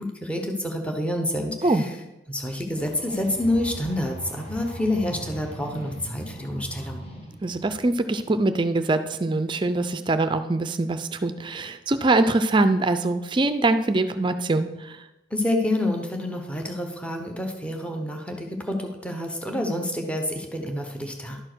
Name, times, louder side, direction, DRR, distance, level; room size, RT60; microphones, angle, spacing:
voice 1, 0.0-1.9 2.3-7.0 15.3-21.4, left 1 dB, 5° left, 3 dB, 1.0 m, -28 dB
sound 1, 2.7-7.8, right 1 dB, 30° left, 1.7 m, -39 dB
voice 2, 7.4-15.0, right 2 dB, 25° right, 10 dB, 0.4 m, -23 dB
11.5 x 4.6 x 6.1 m, 0.99 s
head